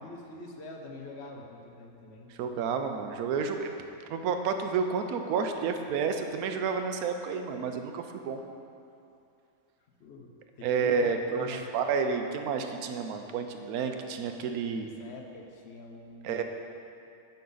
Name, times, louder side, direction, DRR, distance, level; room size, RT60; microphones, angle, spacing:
voice 1, 0.0-2.3 10.0-10.3 10.6-11.9 14.7-16.4, left 3 dB, 55° left, 2 dB, 0.9 m, -46 dB
voice 2, 2.4-3.7 4.1-8.4 10.6-14.9 16.2-16.4, right 5 dB, 80° right, 6 dB, 1.1 m, -30 dB
9.3 x 5.4 x 3.8 m, 2.6 s
omnidirectional pair, 1.5 m